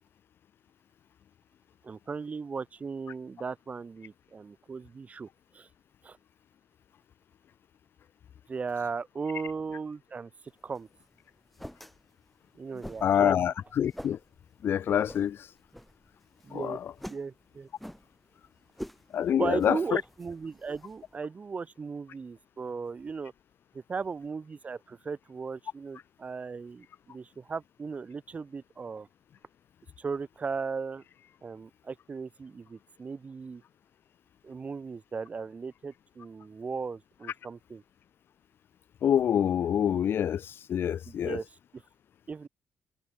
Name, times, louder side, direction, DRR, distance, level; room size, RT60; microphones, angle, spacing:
voice 1, 1.8-5.3 5.5-5.7 6.0-6.2 8.5-10.3 10.6-10.9 12.5-13.4 16.4-16.8 17.1-17.7 19.4-23.3 23.7-29.1 30.0-31.0 31.4-33.6 34.4-37.8 41.1-41.6 42.3-42.5, right 5 dB, 30° right, 0.6 m, -37 dB
sound 1, 10.5-21.2, equal, ahead, 1.1 m, -48 dB
voice 2, 13.0-14.2 14.6-15.4 16.5-16.8 19.1-20.0 39.0-41.4, left 9 dB, 55° left, 0.3 m, -26 dB
cardioid pair, 105°, 4 cm